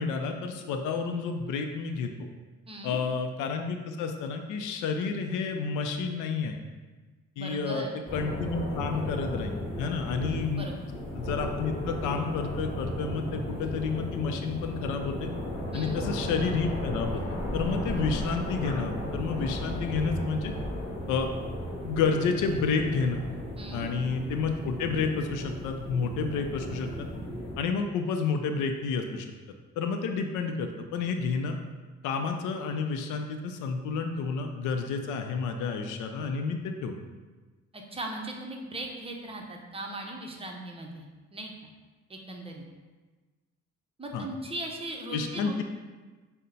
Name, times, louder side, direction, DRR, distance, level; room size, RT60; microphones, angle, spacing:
voice 1, 0.0-2.1 2.8-6.6 7.4-7.9 8.1-10.7 11.2-15.3 15.7-17.2 17.5-20.5 21.1-21.3 21.8-23.2 23.7-27.1 27.6-29.3 29.8-31.6 32.0-36.9 44.1-44.3 45.1-45.6, left 5 dB, 90° left, 5 dB, 0.5 m, -30 dB
voice 2, 2.7-3.0 7.4-7.9 10.6-10.8 15.7-16.0 23.6-23.9 37.7-41.1 41.3-41.7 42.1-42.6 44.0-45.6, right 1 dB, 20° right, 1 dB, 0.6 m, -38 dB
sound 1, 8.1-27.6, equal, 20° left, 1.4 m, -35 dB
5.5 x 2.1 x 3.9 m, 1.3 s
cardioid pair, 90°, 30 cm